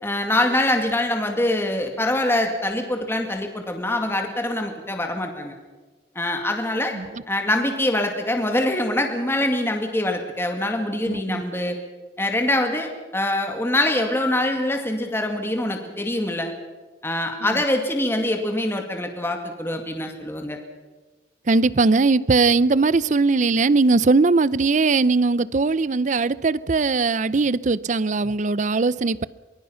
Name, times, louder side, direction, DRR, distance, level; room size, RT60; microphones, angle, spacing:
voice 1, 0.0-5.5 6.2-6.9 7.3-11.8 12.2-16.5 17.0-20.6, left 1 dB, 15° left, 2.1 m, -24 dB
voice 2, 11.1-11.4 17.4-17.6 21.5-29.3, right 3 dB, 45° right, 0.5 m, -20 dB
23.5 x 21.0 x 5.7 m
head